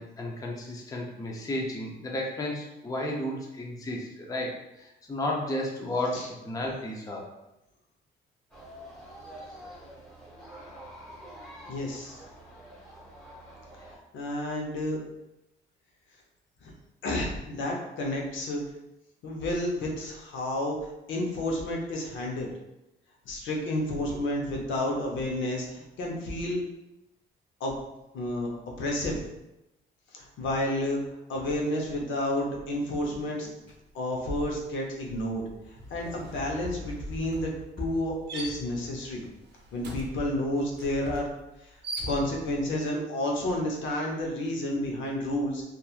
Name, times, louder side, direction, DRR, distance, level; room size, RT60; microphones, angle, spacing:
voice 1, 0.0-7.3, left 1 dB, 15° left, -1 dB, 0.5 m, -33 dB
sound 1, 8.5-14.0, equal, ahead, 1.1 m, -47 dB
voice 2, 11.7-12.2 14.1-15.0 16.6-16.7 17.0-18.6 19.2-22.5 23.3-26.6 27.6-27.7 28.1-28.5 28.8-29.2 30.1-31.0 31.3-33.5 33.9-35.4 35.9-37.5 37.8-39.2 39.7-41.3 42.0-45.6, left 1 dB, 75° left, -1 dB, 0.7 m, -30 dB
sound 2, 33.6-33.9 34.2-42.6, right 1 dB, 60° right, 0.6 m, -41 dB
2.8 x 2.3 x 2.4 m, 0.92 s
cardioid pair, 90°, 20 cm